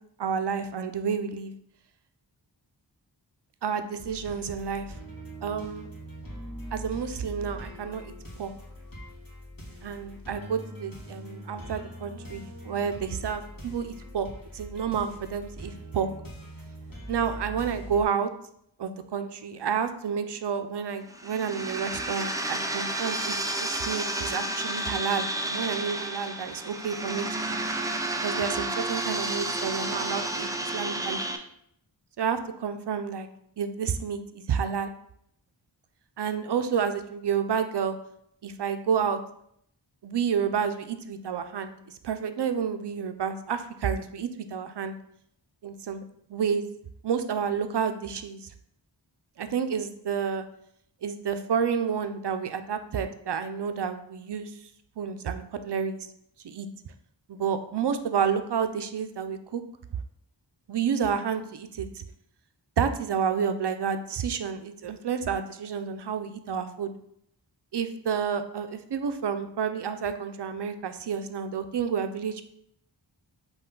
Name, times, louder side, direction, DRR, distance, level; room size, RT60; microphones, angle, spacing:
voice 1, 0.2-1.5 3.6-4.9 5.4-5.9 6.7-8.1 8.4-8.5 9.8-14.3 14.5-16.1 17.1-18.3 18.8-27.6 28.2-31.3 32.2-33.3 33.6-34.9 36.2-37.9 38.4-39.2 40.0-41.8 42.0-45.0 45.6-46.0 46.3-46.6 47.0-48.5 49.4-50.4 51.0-54.5 55.0-56.1 56.4-56.7 57.3-59.6 60.7-62.0 62.8-66.9 67.7-72.4, right 7 dB, 65° right, 9 dB, 0.5 m, -30 dB
sound 1, 4.0-18.0, equal, 45° left, 1.4 m, -42 dB
sound 2, 21.1-31.4, right 1 dB, 10° right, 0.3 m, -31 dB
5.5 x 2.3 x 3.7 m, 0.72 s
wide cardioid pair, 45°, 45 cm